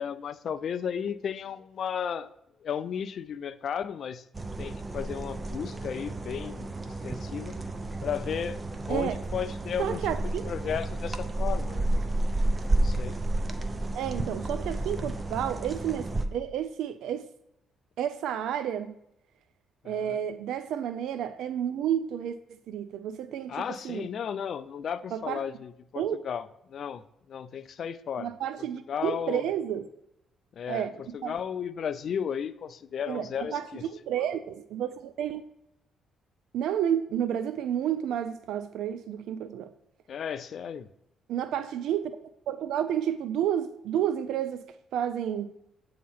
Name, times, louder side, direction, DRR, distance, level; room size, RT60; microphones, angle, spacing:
voice 1, 0.0-2.3 2.6-4.2 4.6-6.7 7.0-7.5 8.0-8.6 8.9-11.9 12.7-13.2 19.8-20.2 23.5-27.0 27.3-28.3 28.9-29.4 30.6-33.8 40.1-40.9, left 8 dB, 60° left, 0.3 m, -34 dB
sound 1, 4.3-16.3, right 2 dB, 25° right, 0.6 m, -31 dB
voice 2, 9.8-10.5 14.0-17.3 18.0-19.0 19.9-22.4 22.7-24.1 25.1-25.4 26.0-26.2 28.2-29.9 30.7-31.0 31.2-31.3 33.1-33.6 34.1-35.4 36.5-39.7 41.3-42.1 42.5-44.6 44.9-45.5, right 10 dB, 80° right, 0.3 m, -30 dB
8.4 x 2.8 x 5.5 m
cardioid pair, 90°, 0 cm